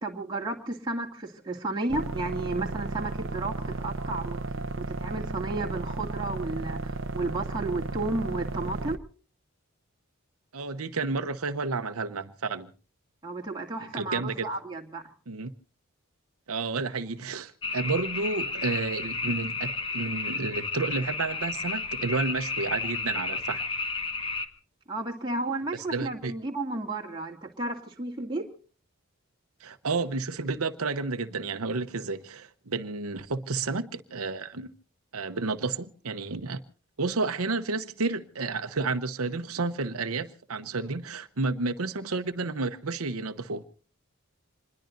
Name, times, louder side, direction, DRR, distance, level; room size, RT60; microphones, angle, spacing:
voice 1, 0.0-4.4 4.8-9.0 13.2-15.0 24.9-28.5, right 2 dB, 20° right, 2.3 m, -33 dB
sound 1, 1.9-9.0, right 3 dB, 60° right, 0.8 m, -34 dB
voice 2, 10.5-12.7 13.9-14.4 15.3-15.5 16.5-23.6 25.9-26.3 29.6-34.7 35.1-36.6 37.0-43.6, right 3 dB, 85° right, 0.9 m, -31 dB
sound 2, 17.6-24.5, left 4 dB, 25° left, 1.2 m, -32 dB
26.5 x 21.0 x 2.6 m
head